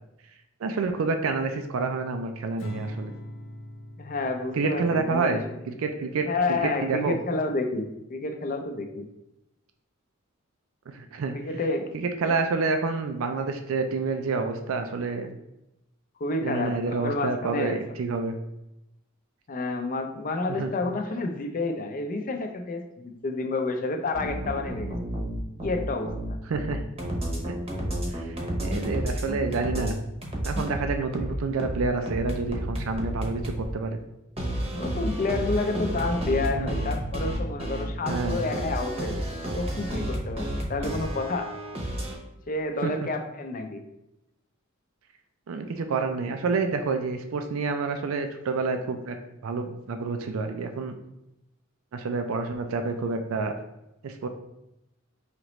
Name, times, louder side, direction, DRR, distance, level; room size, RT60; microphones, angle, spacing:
voice 1, 0.6-3.1 4.5-7.2 10.9-11.3 11.9-15.3 16.4-18.3 20.5-20.7 26.5-26.8 27.4-27.5 28.1-30.0 30.4-34.0 36.6-36.8 38.1-38.4 42.8-42.9 45.5-49.2 49.4-50.9 51.9-53.5 54.0-54.3, right 4 dB, 85° right, 6 dB, 0.4 m, -28 dB
Acoustic guitar / Strum, 2.6-5.9, left 1 dB, 75° left, 0.8 m, -42 dB
voice 2, 4.0-5.6 6.3-9.1 11.3-11.9 12.2-12.3 16.2-17.8 19.5-25.0 25.6-26.4 34.7-41.5 42.5-43.8, left 3 dB, 40° left, 5 dB, 0.5 m, -30 dB
sound 1, 24.1-29.9 30.2-33.7 34.4-42.2, right 1 dB, 30° right, 0.8 m, -31 dB
5.0 x 2.9 x 3.0 m, 0.89 s
head